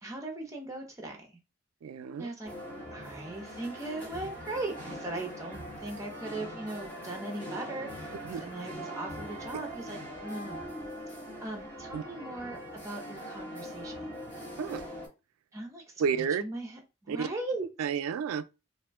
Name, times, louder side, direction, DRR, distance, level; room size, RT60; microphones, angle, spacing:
voice 1, 0.0-1.3 2.2-2.5 2.9-10.6 11.1-11.2 11.4-14.1 15.5-17.7, right 2 dB, 15° right, 0.6 m, -39 dB
voice 2, 1.8-2.3 8.2-8.4 11.9-12.0 14.6-14.8 16.0-16.4 17.1-17.3 17.8-18.4, right 7 dB, 90° right, 0.3 m, -31 dB
sound 1, 2.4-15.1, equal, 20° left, 1.0 m, -42 dB
2.5 x 2.1 x 3.4 m
head